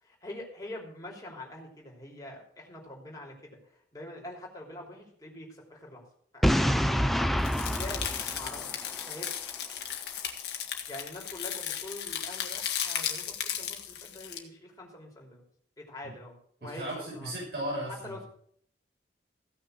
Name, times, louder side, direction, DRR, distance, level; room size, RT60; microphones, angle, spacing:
voice 1, 0.0-6.0 6.3-6.7 7.6-8.0 8.3-8.6 9.0-9.4 10.9-15.4 15.8-17.3 17.9-18.3, left 1 dB, 20° left, -2 dB, 3.1 m, -44 dB
Boom, 6.4-9.3, equal, ahead, 0.7 m, -27 dB
sound 1, 7.4-14.4, left 9 dB, 70° left, 1.7 m, -35 dB
voice 2, 16.7-18.3, right 1 dB, 70° right, -5 dB, 6.2 m, -36 dB
15.5 x 6.4 x 6.4 m, 0.63 s
head